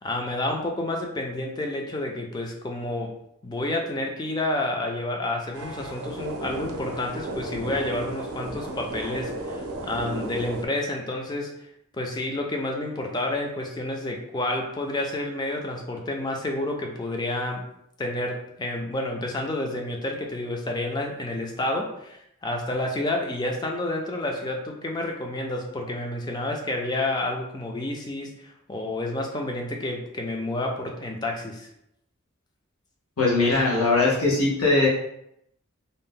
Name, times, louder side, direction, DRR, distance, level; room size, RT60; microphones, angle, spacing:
voice 1, 0.0-3.2 3.4-11.5 12.0-17.7 18.0-31.7, left 1 dB, 20° left, 2 dB, 0.3 m, -29 dB
sound 1, 5.5-10.7, right 2 dB, 85° right, 0.5 m, -34 dB
voice 2, 33.2-34.9, left 3 dB, 90° left, -3 dB, 0.8 m, -20 dB
2.6 x 2.1 x 3.6 m, 0.78 s
head